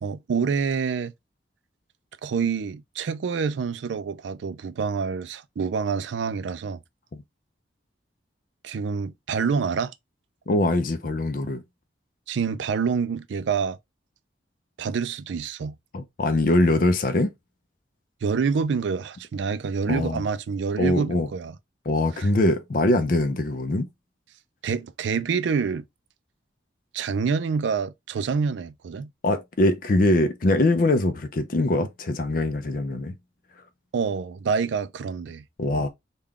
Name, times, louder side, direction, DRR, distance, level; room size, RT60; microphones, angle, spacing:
voice 1, 0.0-1.1 2.2-6.8 8.6-9.9 12.3-13.8 14.8-15.8 18.2-21.6 22.1-22.3 24.6-25.8 26.9-29.1 33.9-35.4, right 5 dB, 75° right, 0.4 m, -27 dB
voice 2, 10.5-11.6 15.9-17.3 19.9-20.2 20.8-21.3 21.9-23.9 29.2-33.2 35.6-35.9, left 2 dB, 45° left, 0.4 m, -22 dB
3.6 x 2.3 x 3.4 m
head